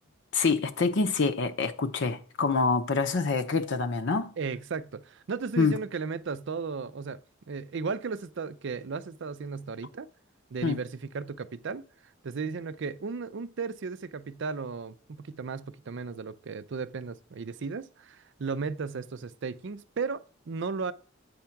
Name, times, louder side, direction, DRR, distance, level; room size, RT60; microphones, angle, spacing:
voice 1, 0.3-4.3 5.6-5.8 10.6-10.8, left 4 dB, 55° left, 0.6 m, -26 dB
voice 2, 4.4-7.2 7.5-10.1 10.5-11.8 12.2-20.9, right 5 dB, 60° right, 0.5 m, -35 dB
8.6 x 3.4 x 5.8 m
head